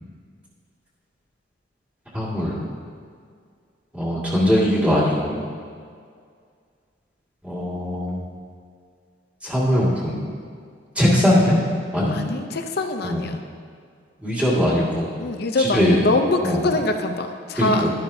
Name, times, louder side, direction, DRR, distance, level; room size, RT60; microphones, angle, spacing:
voice 1, 2.1-2.6 3.9-5.4 7.4-8.1 9.4-10.2 11.0-11.6 11.9-12.2 13.0-13.2 14.2-15.2 15.6-16.0 16.4-16.7 17.6-17.9, equal, 5° right, -7 dB, 2.2 m, -20 dB
voice 2, 12.1-13.4 15.2-17.9, left 2 dB, 55° left, 5 dB, 0.6 m, -24 dB
11.5 x 11.0 x 2.8 m, 2.2 s
head